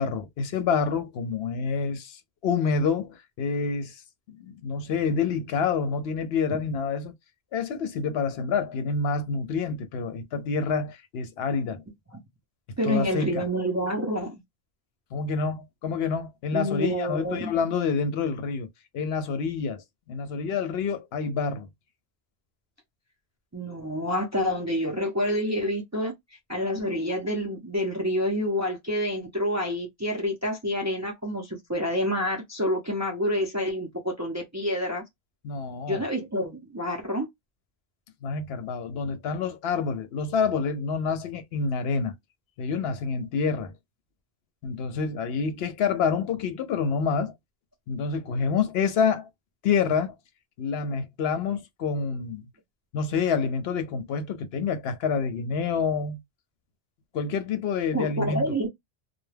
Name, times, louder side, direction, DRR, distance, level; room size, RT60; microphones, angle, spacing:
voice 1, 0.0-4.0 4.3-7.1 7.5-11.8 12.8-13.5 15.1-18.7 18.9-21.7 35.4-36.0 38.2-42.1 42.6-43.7 44.6-47.3 47.9-49.3 49.6-50.1 50.6-52.4 52.9-56.2 57.1-58.7, left 5 dB, 70° left, 0.8 m, -27 dB
voice 2, 12.8-14.4 16.5-17.5 23.5-26.1 26.5-35.0 35.9-37.3 57.9-58.7, equal, 25° right, 0.4 m, -28 dB
2.2 x 2.1 x 3.2 m
omnidirectional pair, 1.1 m